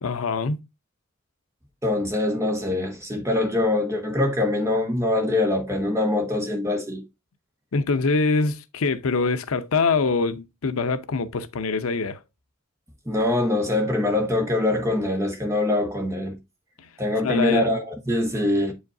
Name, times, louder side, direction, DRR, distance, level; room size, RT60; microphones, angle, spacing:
voice 1, 0.0-0.6 7.7-12.2 17.2-17.6, left 4 dB, 90° left, 0.6 m, -24 dB
voice 2, 1.8-7.0 13.1-16.4 17.0-18.7, left 2 dB, 15° right, 1.2 m, -23 dB
7.7 x 5.0 x 2.6 m
head